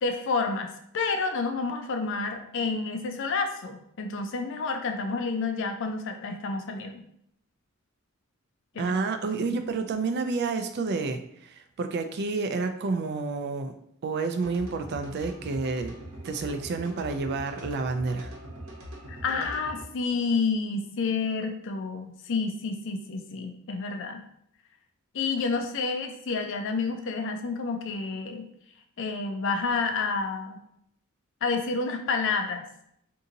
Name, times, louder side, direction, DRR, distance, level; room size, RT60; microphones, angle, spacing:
voice 1, 0.0-7.0 8.7-9.0 19.1-24.2 25.1-28.5 29.0-30.6 31.4-32.7, left 4 dB, 60° left, 5 dB, 0.5 m, -29 dB
voice 2, 8.8-13.7 14.0-15.9 16.2-18.3, right 4 dB, 50° right, 7 dB, 0.4 m, -29 dB
sound 1, 14.4-19.8, equal, 70° right, 0.9 m, -42 dB
2.7 x 2.6 x 3.8 m, 0.73 s
head